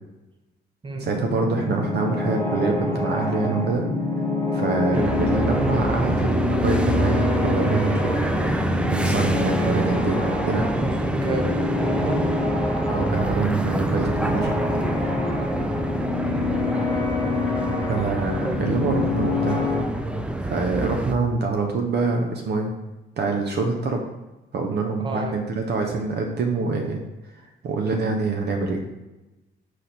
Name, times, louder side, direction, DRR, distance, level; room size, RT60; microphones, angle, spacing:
voice 1, 0.9-3.8 4.5-8.4 8.9-10.7 12.9-14.5 17.9-19.7 20.4-22.7 23.2-24.0 24.5-27.0 27.6-28.8, right 4 dB, 55° right, 2 dB, 0.6 m, -25 dB
sound 1, 1.0-19.8, left 2 dB, 15° left, 0.9 m, -26 dB
sound 2, 4.9-21.1, right 1 dB, 5° right, 0.3 m, -26 dB
voice 2, 10.8-12.4 16.2-16.5 25.0-25.4, right 2 dB, 25° right, 3 dB, 0.8 m, -31 dB
4.2 x 3.1 x 4.0 m, 1.0 s
cardioid pair, 90°, 20 cm